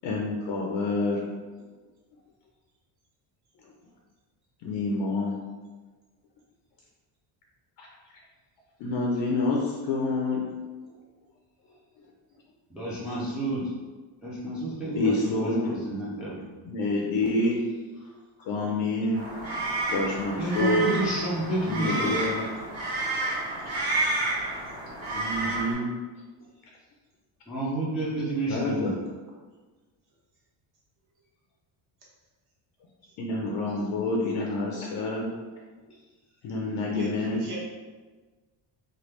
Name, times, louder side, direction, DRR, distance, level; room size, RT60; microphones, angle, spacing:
voice 1, 0.0-1.2 4.6-5.3 8.8-10.5 14.9-15.7 16.7-17.6 18.5-19.2 19.9-20.9 21.7-22.4 25.1-25.9 28.5-28.9 33.2-35.3 36.4-37.4, left 2 dB, 65° left, -2 dB, 0.6 m, -27 dB
voice 2, 12.7-13.7 14.2-16.4 20.4-22.3 27.5-29.0 36.7-36.9 37.3-37.4, right 2 dB, ahead, -8 dB, 0.3 m, -30 dB
sound 1, 19.1-25.7, right 2 dB, 30° right, 0.7 m, -30 dB
voice 3, 36.9-37.6, right 1 dB, 50° right, -5 dB, 1.2 m, -41 dB
3.2 x 2.2 x 3.1 m, 1.3 s
cardioid pair, 160°, 47 cm